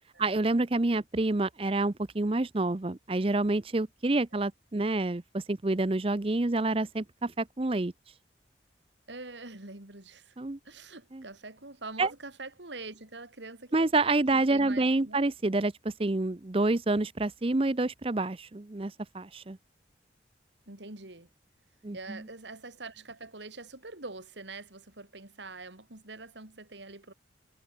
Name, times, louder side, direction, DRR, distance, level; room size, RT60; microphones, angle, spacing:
voice 1, 0.2-7.9 10.4-10.6 11.1-11.2 12.0-12.1 13.7-19.6 21.8-22.2, right 2 dB, 30° right, 0.6 m, -28 dB
voice 2, 9.1-10.4 10.7-13.9 14.3-15.2 20.7-21.3 21.9-27.1, right 3 dB, 75° right, 3.5 m, -44 dB
head